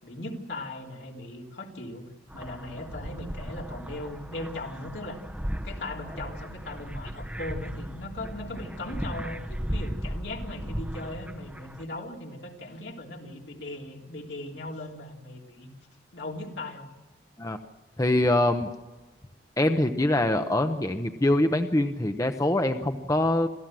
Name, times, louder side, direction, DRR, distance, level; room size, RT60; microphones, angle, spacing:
voice 1, 0.0-2.1 2.3-5.2 5.6-15.7 16.1-16.9, left 1 dB, 75° left, 0 dB, 3.3 m, -38 dB
sound 1, 2.3-11.8, equal, 10° right, 0.9 m, -36 dB
voice 2, 18.0-18.7 19.6-23.5, left 1 dB, 20° left, 7 dB, 0.8 m, -24 dB
27.0 x 15.0 x 7.6 m, 1.2 s
head